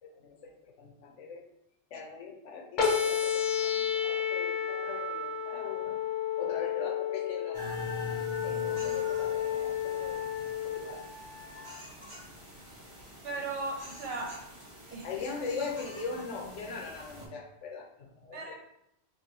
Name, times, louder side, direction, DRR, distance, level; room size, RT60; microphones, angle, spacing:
voice 1, 0.0-1.5 1.9-6.0 6.4-7.6 8.4-11.0 15.0-18.4, left 4 dB, 80° left, 0 dB, 1.0 m, -41 dB
sound 1, 2.8-10.8, left 8 dB, 50° left, 0.8 m, -31 dB
Wind instrument woodwind instrument, 7.5-11.7, left 3 dB, 10° left, 1.4 m, -45 dB
sound 2, 7.5-17.3, equal, 30° right, 0.9 m, -45 dB
voice 2, 13.2-14.4 14.9-15.0 18.3-18.5, right 3 dB, 60° right, -1 dB, 1.1 m, -36 dB
3.1 x 2.6 x 3.9 m, 0.80 s
omnidirectional pair, 1.2 m